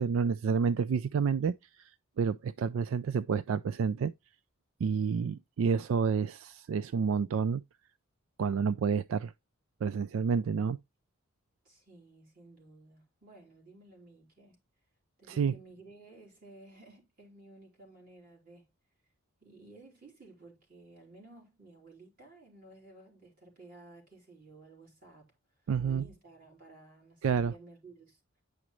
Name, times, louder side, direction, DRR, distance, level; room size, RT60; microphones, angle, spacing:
voice 1, 0.0-1.9 2.2-4.1 4.8-7.6 8.4-9.3 9.8-10.8 15.3-15.6 25.7-26.0 27.2-27.5, right 6 dB, 75° right, 0.3 m, -29 dB
voice 2, 11.6-14.6 15.2-18.7 19.4-28.4, right 2 dB, 45° right, 3.5 m, -55 dB
9.6 x 5.0 x 3.0 m
head